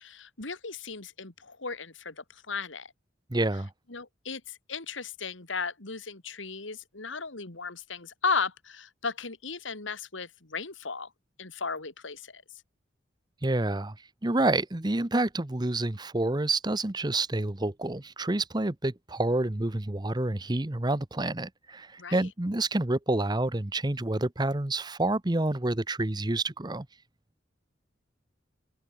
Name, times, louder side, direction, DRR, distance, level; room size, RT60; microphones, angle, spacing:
voice 1, 0.0-2.9 3.9-11.1 11.4-12.4 22.0-22.3, left 5 dB, 85° left, 3.0 m, -35 dB
voice 2, 3.3-3.7 13.4-14.0 14.2-26.9, right 2 dB, 20° right, 0.9 m, -28 dB
open air
head